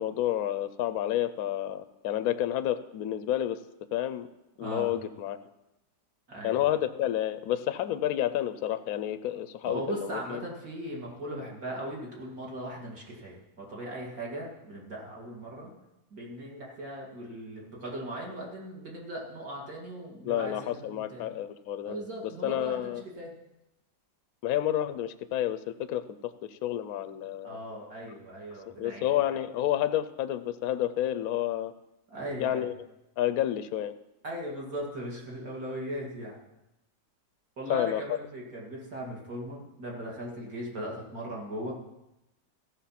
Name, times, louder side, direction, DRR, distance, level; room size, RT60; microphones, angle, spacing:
voice 1, 0.0-3.6 3.9-4.3 4.6-5.4 6.4-10.4 20.2-22.0 22.4-23.0 24.4-27.6 28.8-31.7 32.4-32.7 33.2-33.9 37.7-38.0, left 12 dB, 70° left, 11 dB, 0.9 m, -30 dB
voice 2, 4.6-4.9 6.3-6.6 9.7-15.7 16.1-21.2 21.8-23.3 27.4-29.1 32.1-32.7 34.2-36.4 37.6-41.7, right 1 dB, 55° right, -3 dB, 2.8 m, -38 dB
14.5 x 6.3 x 5.8 m, 0.92 s
omnidirectional pair, 1.9 m